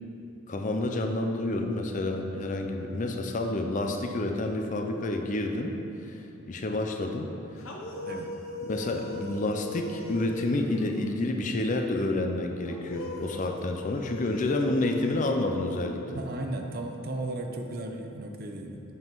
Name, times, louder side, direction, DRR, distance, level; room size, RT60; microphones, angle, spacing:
voice 1, 0.5-5.7 6.0-7.3 8.6-16.2, left 2 dB, 40° left, 4 dB, 0.5 m, -29 dB
sound 1, 7.6-11.3 12.7-16.3, left 1 dB, 75° left, 0.9 m, -40 dB
voice 2, 8.0-8.3 16.1-18.8, right 2 dB, 45° right, 3 dB, 0.6 m, -35 dB
8.2 x 5.5 x 4.6 m, 2.8 s
head